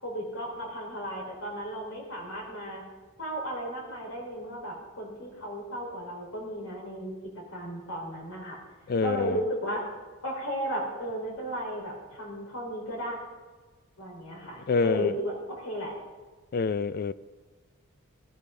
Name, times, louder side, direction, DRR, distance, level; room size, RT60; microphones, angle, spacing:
voice 1, 0.0-2.8 3.2-8.6 9.0-9.8 10.2-13.2 14.0-15.9, equal, 75° left, 4.1 m, -34 dB
voice 2, 8.9-9.4 14.7-15.1 16.5-17.1, left 4 dB, 45° left, 0.4 m, -26 dB
15.5 x 14.0 x 3.8 m
head